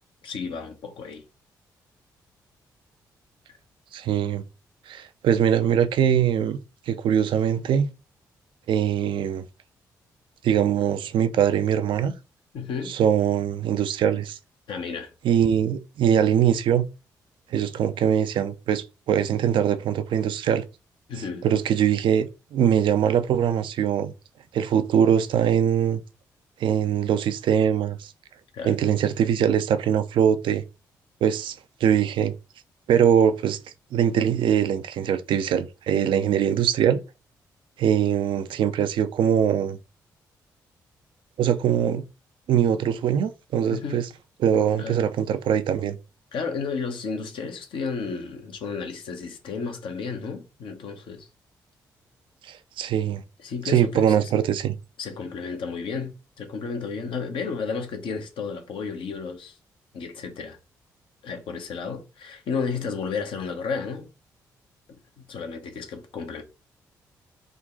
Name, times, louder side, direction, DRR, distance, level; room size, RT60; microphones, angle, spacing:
voice 1, 0.2-1.2 12.5-12.9 14.7-15.1 21.1-21.4 28.5-28.7 43.7-44.1 44.8-45.0 46.3-51.3 53.4-54.3 55.0-59.6 59.9-60.6 61.2-64.1 64.9-66.4, left 5 dB, 65° left, 1.0 m, -32 dB
voice 2, 3.9-4.4 4.9-6.6 6.9-7.9 8.7-9.4 10.4-12.1 12.9-14.4 15.2-16.9 17.5-20.6 21.4-24.1 24.5-26.0 26.6-28.1 28.6-30.6 31.2-31.6 31.8-32.3 32.9-33.6 33.9-37.0 37.8-39.8 41.4-42.1 42.5-44.1 44.4-46.0 52.5-53.2 53.7-54.7, right 9 dB, 65° right, 0.4 m, -22 dB
3.8 x 2.3 x 3.7 m
hypercardioid pair, 45°, 9 cm